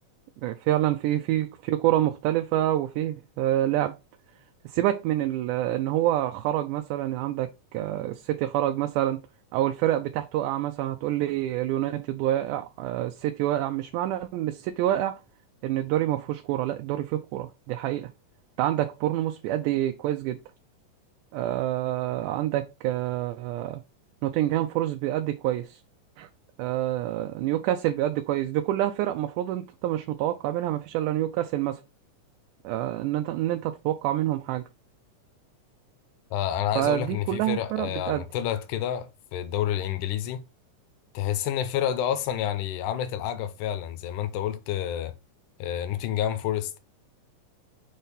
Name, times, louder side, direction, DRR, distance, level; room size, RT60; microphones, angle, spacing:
voice 1, 0.4-4.0 4.7-9.2 9.5-15.2 15.6-18.1 18.6-20.4 21.3-23.8 24.2-25.8 26.2-26.3 26.6-31.8 32.6-34.7 36.8-38.2, right 13 dB, 80° right, 2.0 m, -27 dB
voice 2, 36.3-40.4 41.1-45.1 45.6-46.8, left 10 dB, 80° left, 2.2 m, -29 dB
6.4 x 2.9 x 5.3 m
omnidirectional pair, 3.7 m